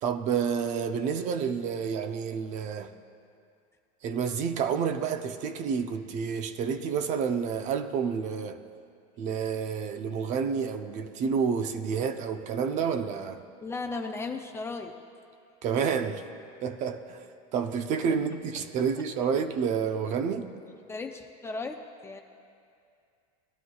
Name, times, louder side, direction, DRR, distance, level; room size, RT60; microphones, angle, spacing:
voice 1, 0.0-2.9 4.0-8.6 9.2-13.4 15.6-16.2 16.6-17.3 17.5-20.5, right 6 dB, 40° right, 0.7 m, -29 dB
voice 2, 13.6-14.9 20.9-22.2, left 3 dB, 15° left, 0.4 m, -36 dB
19.5 x 12.0 x 2.3 m
supercardioid pair, 150°, 19 cm